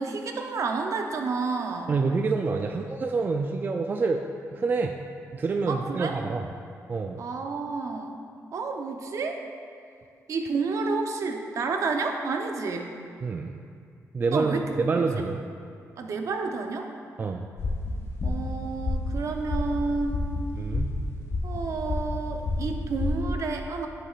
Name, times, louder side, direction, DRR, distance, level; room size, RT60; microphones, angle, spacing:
voice 1, 0.0-1.9 5.7-6.1 7.2-8.2 8.5-9.4 10.3-12.9 14.3-14.9 16.0-16.9 18.2-20.2 21.4-23.9, right 4 dB, 60° right, 4 dB, 0.7 m, -30 dB
voice 2, 1.9-4.2 4.5-5.0 5.3-6.5 6.9-7.2 13.2-13.6 14.1-15.4 17.2-17.5 20.6-20.9, right 4 dB, 35° right, 4 dB, 0.3 m, -27 dB
sound 1, 17.6-23.2, left 2 dB, 50° left, 1.0 m, -30 dB
9.8 x 7.5 x 2.4 m, 2.3 s
cardioid pair, 100°, 6 cm